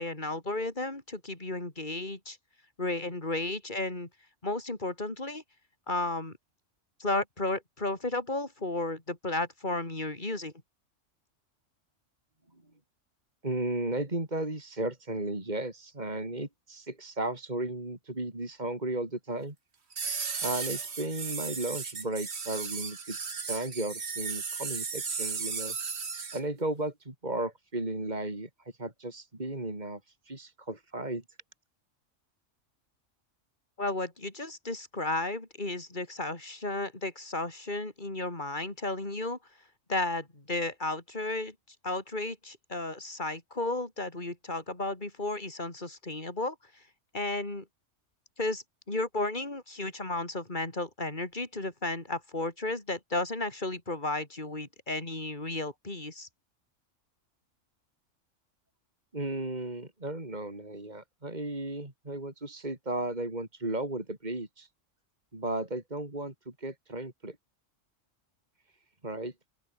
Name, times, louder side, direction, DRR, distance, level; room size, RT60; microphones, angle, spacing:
voice 1, 0.0-2.4 2.8-4.1 4.4-5.4 5.9-6.3 7.0-10.5 33.8-39.4 39.9-41.5 41.8-46.6 47.1-47.6 48.4-56.3, left 2 dB, 40° left, 4.0 m, -33 dB
voice 2, 13.4-19.6 20.4-25.8 26.3-28.5 28.8-30.0 30.3-31.2 59.1-64.7 65.3-67.4 69.0-69.3, right 1 dB, 35° right, 4.0 m, -35 dB
sound 1, 19.9-26.4, right 5 dB, 60° right, 1.9 m, -35 dB
open air
omnidirectional pair, 1.3 m